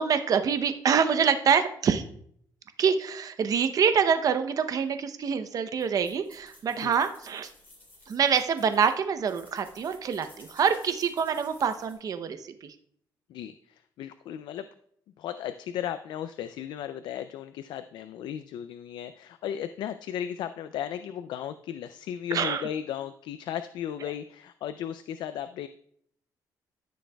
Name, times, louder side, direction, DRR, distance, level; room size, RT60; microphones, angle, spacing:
voice 1, 0.0-2.0 2.8-7.5 8.1-12.7 22.3-22.7, right 6 dB, 50° right, 10 dB, 0.7 m, -26 dB
sound 1, 5.8-11.9, left 1 dB, 25° left, 3.8 m, -55 dB
voice 2, 13.3-14.7 15.2-25.7, left 10 dB, 85° left, 11 dB, 0.4 m, -35 dB
14.0 x 6.3 x 2.3 m, 0.66 s
cardioid pair, 125°, 8 cm